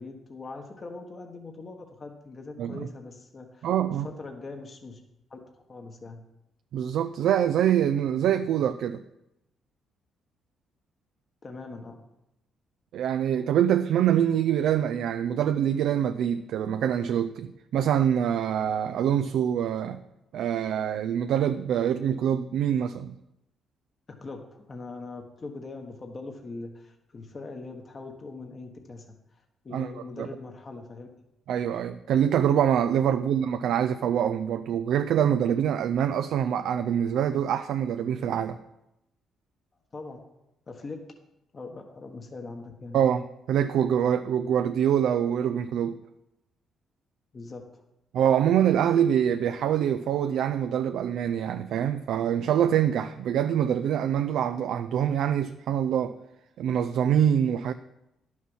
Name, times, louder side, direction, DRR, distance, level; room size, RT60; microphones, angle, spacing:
voice 1, 0.0-5.0 5.3-5.4 5.7-6.2 11.4-12.0 24.2-29.1 29.3-31.3 33.1-33.3 39.9-40.2 40.7-41.0 41.5-43.0 47.3-47.8, left 3 dB, 35° left, 1.3 m, -41 dB
voice 2, 3.6-4.1 6.7-9.0 12.9-20.0 20.3-23.2 29.7-29.9 30.2-30.3 31.5-38.6 42.9-46.0 48.1-56.1 56.6-57.7, right 9 dB, 80° right, 0.4 m, -25 dB
11.0 x 6.4 x 5.5 m
cardioid pair, 90°, 0 cm